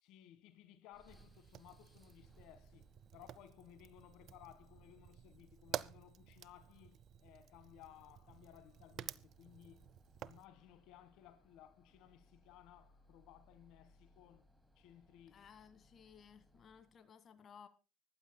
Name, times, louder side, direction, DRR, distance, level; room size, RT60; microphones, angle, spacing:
voice 1, 0.0-9.9 10.2-14.5 14.8-15.4, left 11 dB, 70° left, 1.6 m, -60 dB
sound 1, 0.9-17.1, equal, 5° right, 2.6 m, -69 dB
Fire, 1.1-10.5, right 11 dB, 55° right, 0.6 m, -51 dB
voice 2, 15.3-17.7, left 7 dB, 40° left, 1.5 m, -59 dB
24.5 x 12.0 x 2.2 m
supercardioid pair, 95°, 0 cm